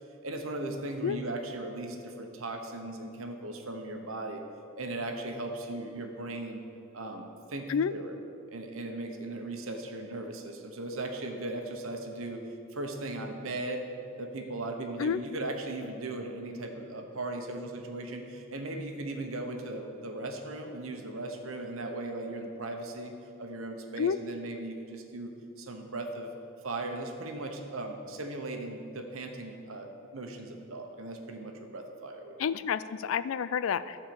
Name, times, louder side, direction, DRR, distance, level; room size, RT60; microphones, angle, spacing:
voice 1, 0.2-4.4 4.8-6.6 6.9-8.2 8.5-13.9 14.2-23.1 23.4-25.3 25.6-26.3 26.6-32.4, right 2 dB, 75° right, 4 dB, 1.1 m, -38 dB
voice 2, 32.4-34.0, left 7 dB, 70° left, 15 dB, 0.4 m, -29 dB
13.5 x 4.4 x 7.1 m, 2.6 s
head